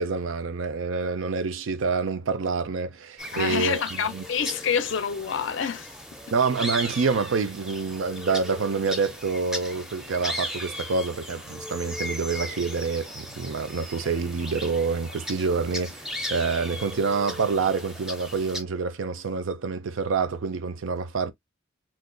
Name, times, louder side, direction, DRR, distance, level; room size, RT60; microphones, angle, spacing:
voice 1, 0.0-4.2 6.3-21.3, right 4 dB, 75° right, 0.5 m, -27 dB
sound 1, 3.2-18.6, equal, 5° right, 0.4 m, -37 dB
voice 2, 3.3-5.9, left 7 dB, 65° left, 0.4 m, -27 dB
2.5 x 2.2 x 3.8 m
head